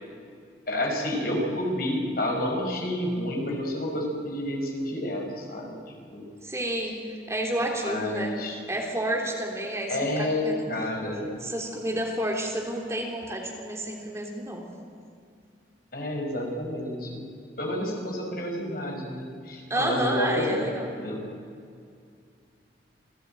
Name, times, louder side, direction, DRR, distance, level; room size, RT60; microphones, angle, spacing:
voice 1, 0.7-5.8 6.1-6.2 7.8-8.6 9.9-11.3 15.9-17.2 17.6-21.2, left 1 dB, 55° left, 1 dB, 5.7 m, -29 dB
voice 2, 6.4-8.3 8.7-10.7 11.4-14.6 19.7-20.9, right 1 dB, 15° right, 0 dB, 3.2 m, -30 dB
27.5 x 17.5 x 9.2 m, 2.3 s
head